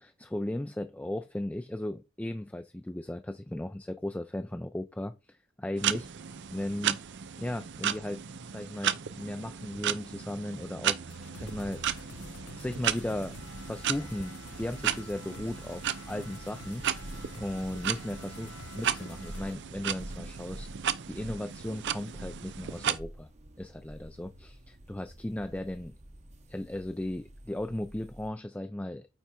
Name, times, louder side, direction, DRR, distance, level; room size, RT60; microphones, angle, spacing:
voice 1, 0.0-6.1 6.5-7.0 7.4-8.2 8.5-11.8 12.6-13.4 13.6-14.3 14.6-17.0 17.4-18.5 18.8-23.3 23.6-26.0 26.5-29.1, left 1 dB, 5° left, 0.3 m, -36 dB
sound 1, 5.8-23.0, right 9 dB, 60° right, 0.5 m, -35 dB
sound 2, 11.1-19.5, left 5 dB, 80° left, 0.6 m, -49 dB
sound 3, 11.4-28.3, right 1 dB, 35° right, 0.9 m, -49 dB
8.8 x 3.5 x 4.4 m
head